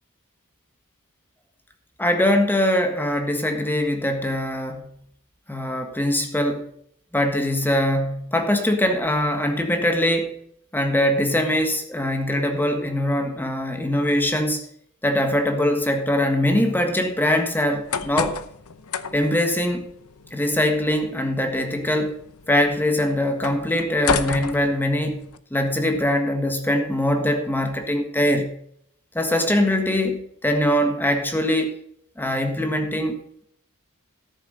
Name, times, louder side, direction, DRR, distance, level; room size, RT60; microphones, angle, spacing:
voice 1, 2.0-4.9 5.5-6.7 7.1-10.4 10.7-14.7 15.0-18.4 19.1-19.9 20.3-22.2 22.5-25.2 25.5-28.5 29.1-31.7 32.2-33.2, left 1 dB, 10° left, 5 dB, 1.5 m, -22 dB
sound 1, 17.6-25.4, left 6 dB, 80° left, 0.8 m, -32 dB
13.5 x 7.1 x 5.3 m, 0.66 s
head